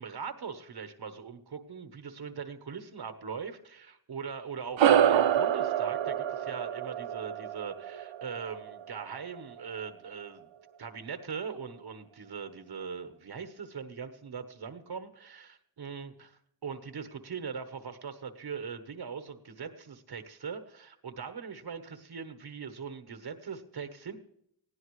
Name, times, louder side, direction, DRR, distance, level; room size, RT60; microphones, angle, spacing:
voice 1, 0.0-10.5 10.8-24.2, right 6 dB, 60° right, 8 dB, 1.2 m, -41 dB
sound 1, 4.8-9.5, right 9 dB, 85° right, 0.8 m, -27 dB
19.0 x 16.5 x 3.2 m, 0.73 s
wide cardioid pair, 105°, 44 cm